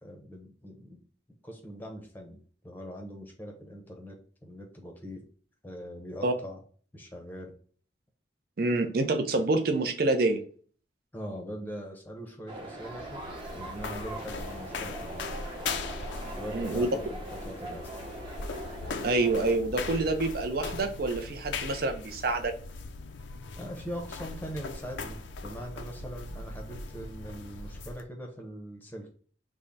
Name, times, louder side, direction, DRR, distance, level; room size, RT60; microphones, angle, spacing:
voice 1, 0.0-1.0 1.4-5.2 5.6-6.6 6.9-7.5 11.1-13.2 13.5-15.2 16.4-17.9 23.6-29.1, equal, 10° left, 0.7 m, -41 dB
voice 2, 8.6-10.4 16.5-16.9 19.0-22.5, right 2 dB, 55° right, 0.5 m, -27 dB
sound 1, 12.5-19.6, right 1 dB, 25° right, 0.8 m, -41 dB
sound 2, 12.8-28.0, left 4 dB, 75° left, 0.5 m, -39 dB
3.5 x 2.2 x 3.9 m
head